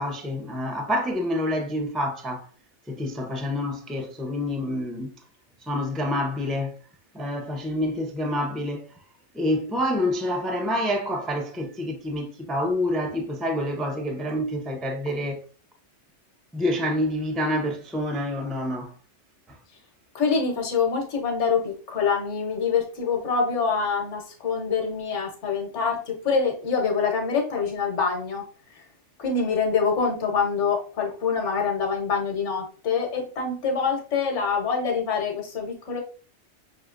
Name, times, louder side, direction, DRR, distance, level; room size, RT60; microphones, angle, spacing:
voice 1, 0.0-2.4 2.9-5.1 5.7-6.7 7.1-8.9 9.3-15.4 16.5-18.9, left 1 dB, ahead, 0.3 m, -27 dB
voice 2, 20.1-28.4 29.2-36.0, left 5 dB, 70° left, 1.3 m, -25 dB
5.6 x 2.9 x 2.5 m
omnidirectional pair, 1.3 m